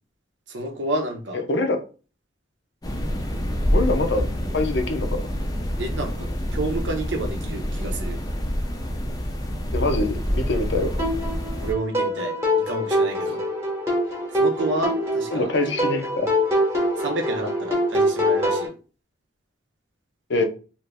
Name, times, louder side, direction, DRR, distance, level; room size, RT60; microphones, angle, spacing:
voice 1, 0.5-1.4 3.9-4.0 4.4-4.5 5.8-8.2 11.6-13.4 14.4-15.5 17.0-18.7, right 2 dB, 85° right, 0.8 m, -30 dB
voice 2, 1.5-1.8 3.7-4.2 4.5-5.2 9.7-11.0 15.3-16.3 20.3-20.4, left 2 dB, 65° left, 0.6 m, -24 dB
sound 1, 2.8-11.7, equal, 20° left, 0.5 m, -27 dB
sound 2, 11.0-18.7, equal, 15° right, 0.9 m, -24 dB
2.7 x 2.5 x 3.3 m
head